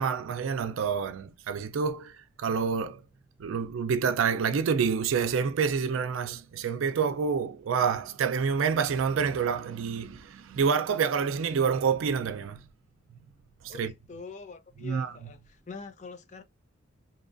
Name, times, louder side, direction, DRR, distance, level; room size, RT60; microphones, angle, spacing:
voice 1, 0.0-3.0 3.4-12.6 13.6-13.9 14.8-15.1, right 6 dB, 90° right, 0.4 m, -28 dB
voice 2, 13.7-16.4, left 4 dB, 35° left, 0.5 m, -44 dB
2.8 x 2.3 x 2.4 m
head